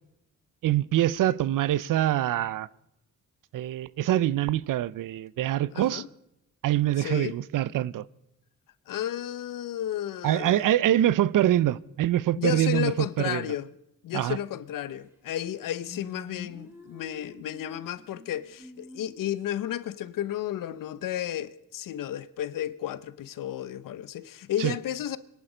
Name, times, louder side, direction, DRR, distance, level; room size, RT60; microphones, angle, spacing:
voice 1, 0.6-2.7 3.5-6.0 6.6-8.0 10.2-13.5 14.1-14.4 24.6-24.7, right 13 dB, 75° right, 0.6 m, -25 dB
voice 2, 5.7-6.1 7.0-7.4 8.9-10.7 12.4-13.7 14.0-25.2, left 11 dB, 80° left, 0.8 m, -33 dB
sound 1, 15.1-15.2 15.4-19.4, left 3 dB, 5° right, 2.5 m, -47 dB
25.0 x 11.0 x 5.0 m
wide cardioid pair, 145°, 32 cm